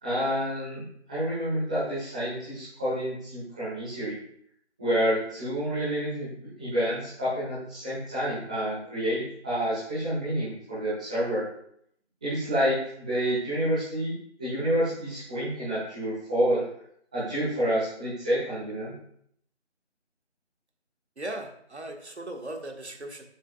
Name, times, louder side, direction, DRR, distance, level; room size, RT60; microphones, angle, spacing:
voice 1, 0.0-4.1 4.8-6.3 6.6-11.4 12.2-14.1 14.4-16.6 17.1-18.9, equal, 5° right, -12 dB, 1.3 m, -28 dB
voice 2, 21.2-23.2, right 1 dB, 70° right, 3 dB, 1.7 m, -38 dB
11.5 x 7.5 x 2.4 m, 0.69 s
figure-of-eight pair, 165°, 35 cm